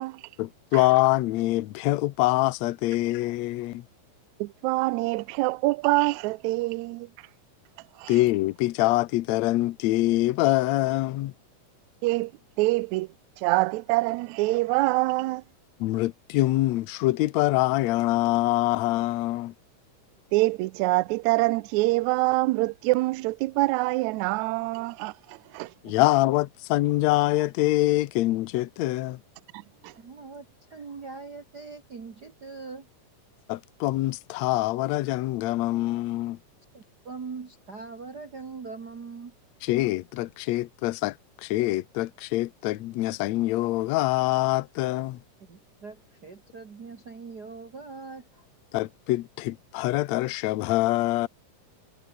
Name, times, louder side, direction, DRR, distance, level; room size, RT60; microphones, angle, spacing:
voice 1, 0.4-3.8 8.1-11.3 15.8-19.5 25.8-29.2 33.5-36.4 39.6-45.2 48.7-51.3, left 18 dB, 75° left, 1.7 m, -25 dB
voice 2, 4.4-7.1 8.0-8.1 12.0-12.3 12.6-13.1 13.4-15.4 20.3-25.7 29.5-29.9, right 21 dB, 85° right, 1.6 m, -25 dB
voice 3, 30.0-32.9 36.7-39.3 45.5-48.5, right 4 dB, 35° right, 1.9 m, -41 dB
omnidirectional pair, 3.9 m